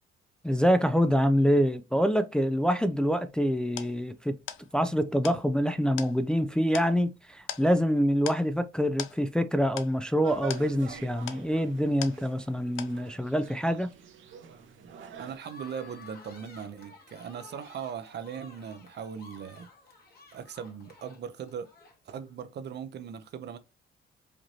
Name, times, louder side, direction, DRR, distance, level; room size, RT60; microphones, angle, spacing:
voice 1, 0.4-4.4 4.7-13.9, equal, 5° left, 0.4 m, -26 dB
sound 1, 3.8-12.5 12.8-13.4, left 11 dB, 85° left, 0.5 m, -43 dB
sound 2, 10.2-15.4, right 7 dB, 75° right, 1.0 m, -46 dB
voice 2, 15.2-19.7 20.3-21.7 22.1-23.6, right 7 dB, 60° right, 0.7 m, -39 dB
sound 3, 15.4-22.3, left 3 dB, 50° left, 1.8 m, -53 dB
5.0 x 3.0 x 2.7 m
cardioid pair, 90°, 20 cm